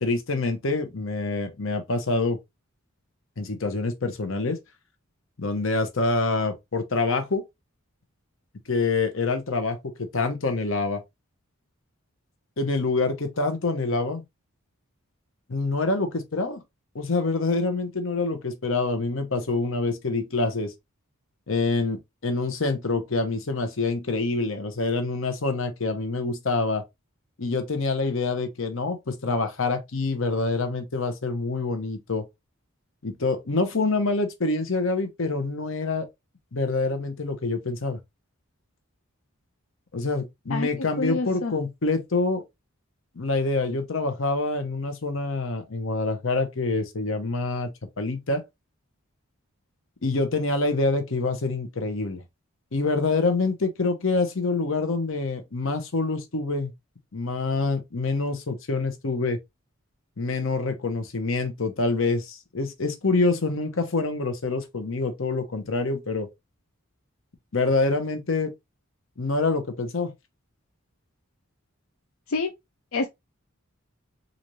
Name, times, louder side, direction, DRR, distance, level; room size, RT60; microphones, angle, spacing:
voice 1, 0.0-2.4 3.4-4.6 5.4-7.4 8.7-11.0 12.6-14.2 15.5-16.6 16.9-20.7 21.5-26.8 27.4-32.2 33.0-36.1 36.5-38.0 39.9-42.4 43.2-47.7 48.0-48.4 50.0-52.2 52.7-56.7 57.1-59.4 60.2-66.3 67.5-68.5 69.2-70.1, left 3 dB, 65° left, 0.9 m, -26 dB
voice 2, 40.5-41.5 72.3-72.5 72.9-73.1, left 3 dB, 85° left, 0.6 m, -28 dB
4.0 x 2.6 x 3.1 m
head